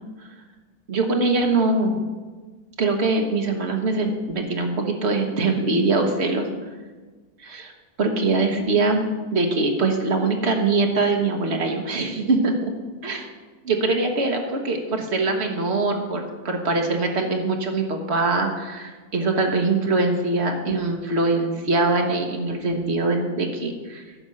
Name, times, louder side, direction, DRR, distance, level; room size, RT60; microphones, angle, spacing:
voice 1, 0.9-2.0 2.8-6.5 7.4-7.7 8.0-12.7 13.0-13.2 13.6-24.0, right 3 dB, 50° right, 3 dB, 1.4 m, -23 dB
11.0 x 4.4 x 7.5 m, 1.4 s
omnidirectional pair, 1.6 m